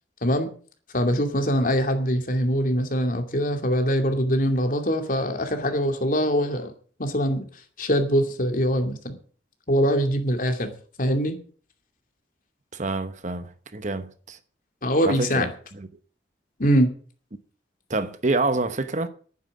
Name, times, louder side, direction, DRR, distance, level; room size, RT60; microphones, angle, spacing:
voice 1, 0.9-6.7 7.0-7.5 7.8-9.2 9.7-10.7 11.0-11.4 14.8-15.5 16.6-16.9, equal, 50° left, 2.6 m, -23 dB
voice 2, 12.7-14.4 15.0-15.9 17.9-19.1, right 3 dB, 45° right, 1.0 m, -27 dB
11.5 x 9.5 x 7.5 m
head